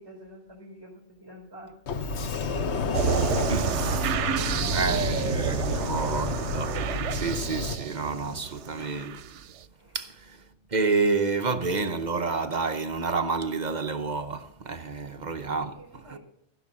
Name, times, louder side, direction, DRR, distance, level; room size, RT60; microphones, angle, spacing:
voice 1, 0.0-1.8 3.4-6.0 9.8-10.0 15.7-16.2, equal, 20° right, 4.0 m, -45 dB
Sliding door, 1.9-7.8, left 3 dB, 70° left, 1.2 m, -30 dB
voice 2, 2.5-3.1 3.5-4.2 4.7-9.2 9.9-16.2, right 4 dB, 45° right, 0.8 m, -30 dB
sound 1, 2.9-9.5, right 9 dB, 85° right, 1.0 m, -30 dB
15.0 x 6.4 x 7.2 m
omnidirectional pair, 1.2 m